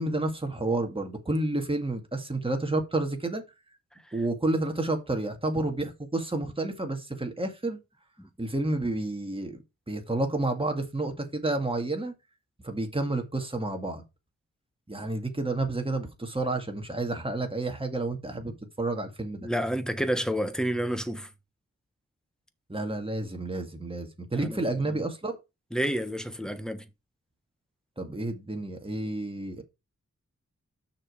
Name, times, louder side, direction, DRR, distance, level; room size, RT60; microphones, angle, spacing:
voice 1, 0.0-3.4 4.1-7.8 8.4-9.6 9.9-12.1 12.6-14.0 14.9-19.5 22.7-25.4 28.0-29.6, right 2 dB, 15° right, 2.0 m, -30 dB
voice 2, 19.4-21.3 24.3-24.6 25.7-26.8, equal, ahead, 1.2 m, -29 dB
6.6 x 6.1 x 4.8 m
wide cardioid pair, 75°, 31 cm